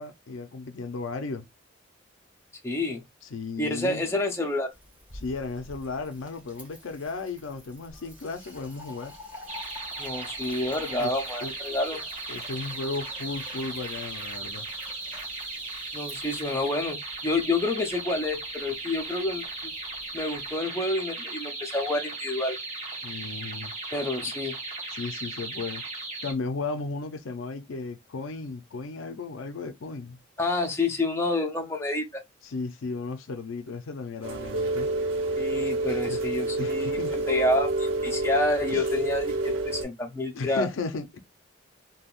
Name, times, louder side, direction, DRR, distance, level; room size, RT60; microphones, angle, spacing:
voice 1, 0.0-1.5 3.3-4.0 5.1-9.1 11.0-11.1 11.4-11.5 12.3-14.7 23.0-23.7 24.2-24.3 24.9-25.8 26.2-30.2 32.4-34.9 36.1-36.2 36.6-37.3 38.7-38.9 40.3-41.2, left 3 dB, 80° left, 0.5 m, -35 dB
voice 2, 2.6-3.0 3.6-4.7 10.0-12.0 15.9-19.7 20.1-22.6 23.9-24.6 30.4-32.2 35.4-40.7, left 2 dB, 15° left, 0.5 m, -28 dB
Fill (with liquid), 4.7-20.6, left 1 dB, 5° right, 1.2 m, -49 dB
sound 1, 9.5-26.3, right 3 dB, 35° right, 0.9 m, -37 dB
Rain, 34.2-39.8, right 2 dB, 85° right, 0.9 m, -28 dB
3.4 x 2.2 x 2.4 m
head